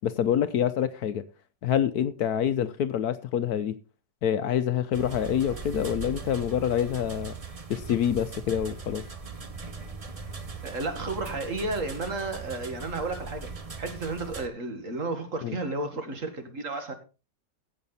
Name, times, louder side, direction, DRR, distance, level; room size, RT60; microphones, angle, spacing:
voice 1, 0.0-1.2 1.6-3.7 4.2-7.3 7.7-9.0 15.4-15.6, left 9 dB, 65° left, 1.1 m, -26 dB
sound 1, 4.9-14.5, right 4 dB, 30° right, 0.7 m, -39 dB
voice 2, 10.6-13.5 13.8-16.9, right 2 dB, 45° right, 2.1 m, -32 dB
16.0 x 6.9 x 4.1 m
omnidirectional pair, 1.9 m